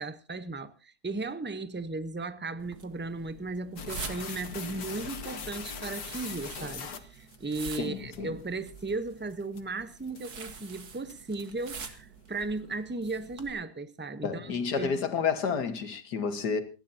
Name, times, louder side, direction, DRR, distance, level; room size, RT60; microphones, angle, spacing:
voice 1, 0.0-14.9, right 3 dB, 10° right, 0.5 m, -36 dB
sound 1, 2.6-13.5, right 5 dB, 70° right, 2.2 m, -46 dB
sound 2, 3.8-7.7 8.1-8.2 8.8-8.9 9.3-9.6 10.1-10.4 10.6-10.7 11.1-11.9, left 5 dB, 65° left, 1.9 m, -40 dB
voice 2, 7.8-8.3 14.2-16.6, left 6 dB, 80° left, 2.1 m, -30 dB
28.0 x 11.5 x 2.8 m
omnidirectional pair, 1.7 m